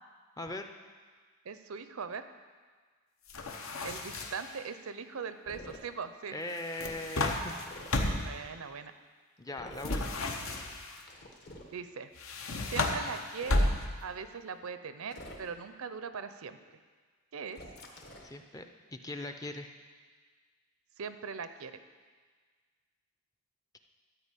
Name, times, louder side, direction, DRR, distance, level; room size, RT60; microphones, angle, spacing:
voice 1, 0.4-0.7 6.3-7.5 9.4-10.4 18.2-19.7, left 2 dB, 15° left, 5 dB, 0.5 m, -40 dB
voice 2, 1.4-2.2 3.8-6.4 8.2-8.9 11.7-12.1 12.7-13.7 14.0-16.6 17.3-17.6 21.0-21.8, right 5 dB, 80° right, 10 dB, 0.6 m, -40 dB
sound 1, 3.3-4.6 6.5-8.4 9.8-11.0 12.2-14.1, left 2 dB, 75° left, 1.0 m, -32 dB
sound 2, 5.5-5.8 7.6-8.0 9.6-10.0 11.0-11.7 13.3-13.7 15.1-15.7 17.5-18.4, left 1 dB, 50° left, 1.2 m, -48 dB
12.5 x 4.8 x 8.3 m, 1.5 s
head